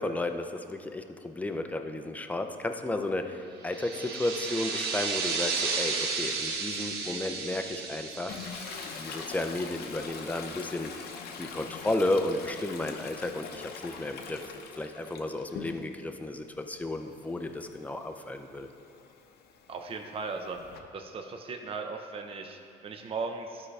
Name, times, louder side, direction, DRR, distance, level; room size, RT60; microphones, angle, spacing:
voice 1, 0.0-8.4 9.0-10.9 11.4-14.4 14.8-18.7, left 2 dB, 10° left, 6 dB, 0.5 m, -33 dB
sound 1, 3.7-10.0, right 4 dB, 70° right, 0.9 m, -33 dB
Toilet flush, 8.3-16.1 16.5-20.8, left 6 dB, 70° left, 0.7 m, -44 dB
voice 2, 19.7-20.6 20.9-23.7, right 4 dB, 35° right, 5 dB, 0.6 m, -37 dB
12.5 x 4.8 x 3.3 m, 2.8 s
cardioid pair, 110°, 17 cm